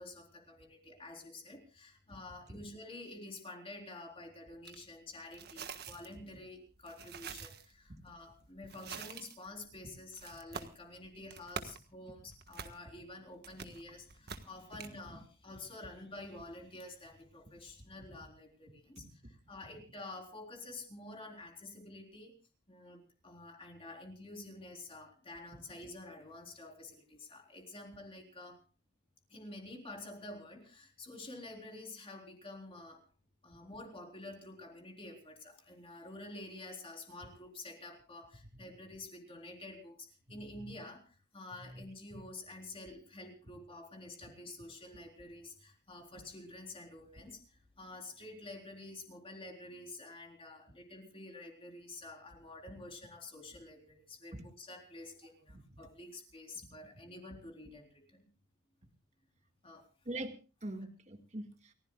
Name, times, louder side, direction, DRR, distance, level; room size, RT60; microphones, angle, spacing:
voice 1, 0.0-22.3 22.7-28.6 29.3-33.0 33.4-58.3 59.6-59.9, left 2 dB, 25° left, 2 dB, 4.0 m, -49 dB
sound 1, 4.6-4.8 5.3-14.9, right 6 dB, 50° right, 1.5 m, -47 dB
voice 2, 60.6-61.7, right 1 dB, 30° right, 5 dB, 2.0 m, -44 dB
29.5 x 16.0 x 2.4 m, 0.33 s
head